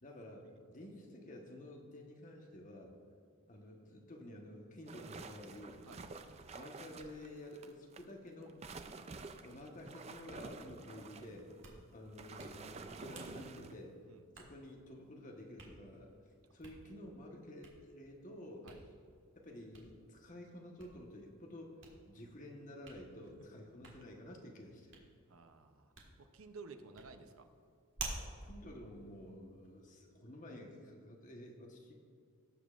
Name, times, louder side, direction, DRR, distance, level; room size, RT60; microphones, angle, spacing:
voice 1, 0.0-2.9 3.5-5.8 6.5-8.6 9.4-11.5 11.9-14.0 14.4-16.1 16.5-18.7 19.3-21.7 22.1-24.9 28.4-32.0, left 1 dB, 35° left, 0 dB, 1.2 m, -51 dB
sound 1, 4.9-8.1 8.4-13.7, right 3 dB, 30° right, 0.4 m, -50 dB
Hands, 11.4-29.9, right 3 dB, 60° right, 1.7 m, -54 dB
voice 2, 25.3-27.4, right 4 dB, 80° right, 7 dB, 0.7 m, -54 dB
18.0 x 7.1 x 2.5 m, 2.3 s
head